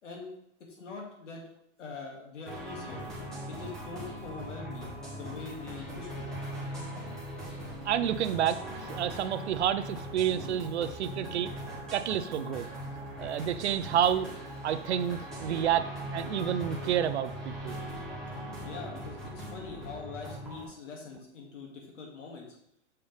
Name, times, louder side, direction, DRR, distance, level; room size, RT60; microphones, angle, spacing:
voice 1, 0.0-0.3 0.7-1.4 1.8-3.1 3.4-6.3 18.6-22.5, left 4 dB, 75° left, 0 dB, 2.4 m, -43 dB
sound 1, 2.4-20.6, equal, ahead, 0.5 m, -40 dB
voice 2, 7.8-11.5 11.9-12.7 13.2-14.3 14.6-17.8, right 10 dB, 65° right, 12 dB, 0.6 m, -29 dB
6.7 x 5.6 x 3.5 m, 0.75 s
hypercardioid pair, 165°, 37 cm